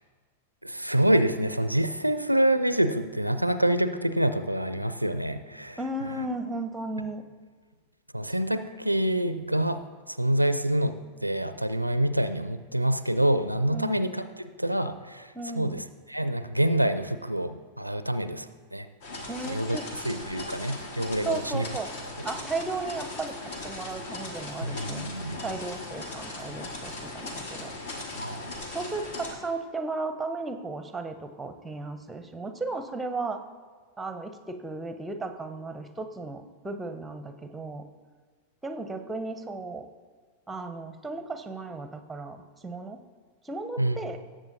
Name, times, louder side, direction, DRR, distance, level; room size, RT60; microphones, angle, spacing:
voice 1, 0.6-5.8 8.1-9.8 10.1-11.0 11.2-18.5 18.7-18.9 19.5-19.8 20.0-21.7 24.6-25.5 28.2-28.5 43.8-44.0, right 1 dB, 90° right, 11 dB, 0.4 m, -26 dB
voice 2, 5.8-7.2 13.7-14.0 15.3-15.9 19.3-19.8 21.2-21.9 22.2-25.1 25.4-27.7 28.7-33.4 34.0-37.8 38.6-39.9 40.5-43.0 43.4-44.2, right 3 dB, 10° right, 8 dB, 0.8 m, -35 dB
sound 1, 19.0-29.4, left 2 dB, 50° left, 1.4 m, -38 dB
17.5 x 7.5 x 2.7 m, 1.5 s
figure-of-eight pair, 90°, 0 cm